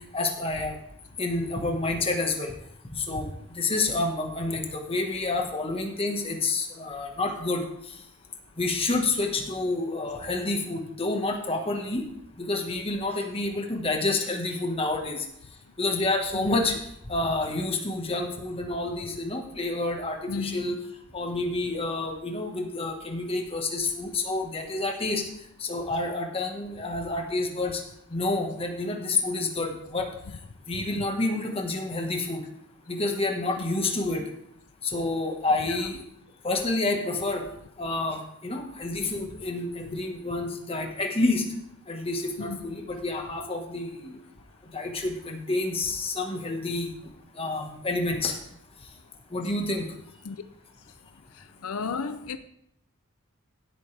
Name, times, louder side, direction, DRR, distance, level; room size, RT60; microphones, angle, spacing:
voice 1, 0.1-0.7 1.2-2.5 3.0-3.3 3.5-7.6 8.6-12.0 12.4-15.2 15.8-16.8 17.1-20.8 21.1-25.2 25.6-27.8 28.1-30.1 30.7-32.4 32.9-34.2 34.8-36.0 36.4-37.4 37.8-41.4 41.9-44.1 44.7-46.9 47.4-48.4 49.3-49.8, left 2 dB, 25° left, 1.5 m, -28 dB
voice 2, 20.3-20.8 30.9-31.0 35.6-35.8 42.4-42.6 50.2-50.4 51.6-52.4, left 5 dB, 90° left, 0.6 m, -33 dB
16.0 x 8.8 x 3.4 m
head